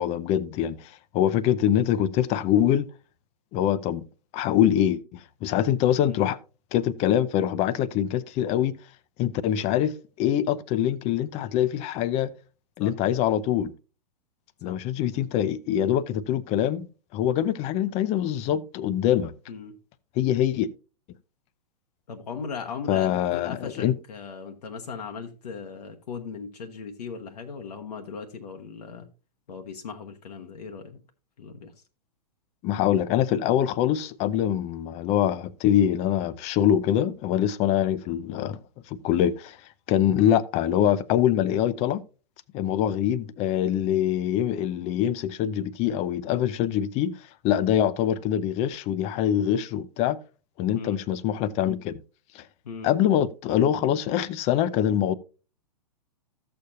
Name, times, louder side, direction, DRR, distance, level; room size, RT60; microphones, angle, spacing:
voice 1, 0.0-2.9 3.5-4.0 4.3-6.4 6.7-8.8 9.2-9.9 10.2-12.3 12.8-13.7 14.6-16.9 17.1-19.3 20.2-20.7 22.9-24.0 32.6-38.6 38.9-39.6 39.9-42.0 42.5-47.1 47.4-50.2 50.6-52.0 52.3-52.4 52.8-55.1, left 10 dB, 30° left, 0.5 m, -24 dB
voice 2, 22.1-29.1 29.5-31.0 31.4-31.7 40.2-40.4 50.7-51.0 52.6-52.9, left 5 dB, 75° left, 1.1 m, -38 dB
14.0 x 6.8 x 2.7 m
hypercardioid pair, 110°, 21 cm